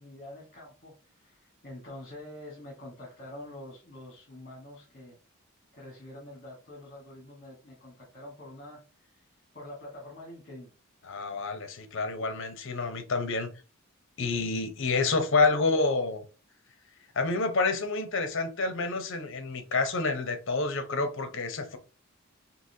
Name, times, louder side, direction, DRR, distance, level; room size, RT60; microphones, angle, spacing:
voice 1, 0.0-5.2 5.7-9.3 9.5-10.7, left 1 dB, 40° left, 1.4 m, -46 dB
voice 2, 11.0-13.5 14.2-16.2 17.1-21.8, left 3 dB, 60° left, 0.7 m, -28 dB
4.0 x 2.8 x 2.7 m
head